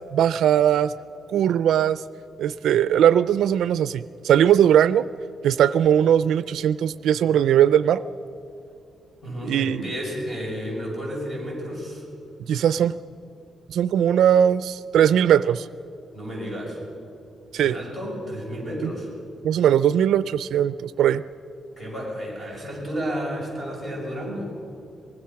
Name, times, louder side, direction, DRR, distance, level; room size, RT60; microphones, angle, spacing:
voice 1, 0.1-0.9 1.3-2.0 2.4-5.1 5.4-8.0 9.4-9.8 12.5-12.9 13.7-15.7 17.5-17.8 18.8-18.9 19.4-21.2, right 10 dB, 90° right, 15 dB, 0.4 m, -19 dB
voice 2, 9.2-12.0 16.1-16.8 17.6-19.1 21.8-24.5, equal, 10° left, -3 dB, 7.1 m, -32 dB
24.5 x 20.5 x 5.8 m, 2.7 s
wide cardioid pair, 155°, 0 cm